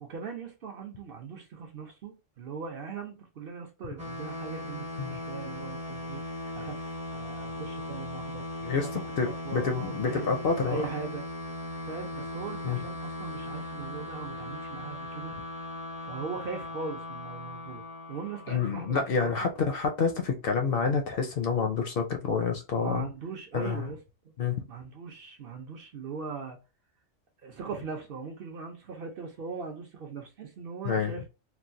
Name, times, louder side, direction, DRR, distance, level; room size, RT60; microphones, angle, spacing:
voice 1, 0.0-8.4 8.7-10.3 10.6-11.2 11.8-15.3 16.0-19.0 19.2-19.5 22.8-24.0 24.2-24.3 24.7-26.6 27.4-31.3, right 5 dB, 55° right, 0.8 m, -40 dB
sound 1, 4.0-19.4, left 1 dB, 10° right, 0.3 m, -38 dB
voice 2, 8.6-10.8 12.6-12.8 18.5-23.0 23.5-23.8 24.4-24.6 30.8-31.1, left 5 dB, 60° left, 0.7 m, -28 dB
3.0 x 2.3 x 2.5 m
omnidirectional pair, 1.2 m